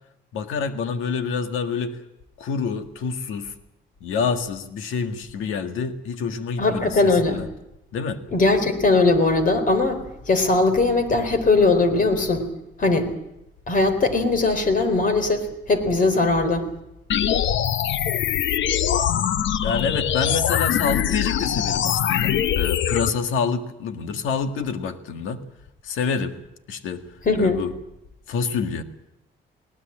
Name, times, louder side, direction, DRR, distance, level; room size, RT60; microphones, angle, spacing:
voice 1, 0.3-2.0 2.4-3.5 4.0-7.5 7.9-8.2 19.6-25.4 25.8-26.3 26.7-27.0 27.4-27.7 28.3-28.8, left 5 dB, 90° left, 7 dB, 1.9 m, -27 dB
voice 2, 6.6-7.4 8.3-10.0 10.3-12.5 12.8-13.1 13.7-16.7 27.3-27.6, left 3 dB, 45° left, 9 dB, 4.1 m, -20 dB
sound 1, 17.1-23.1, left 10 dB, 70° left, 0.9 m, -22 dB
19.5 x 18.5 x 8.8 m, 0.86 s
cardioid pair, 90°, 20 cm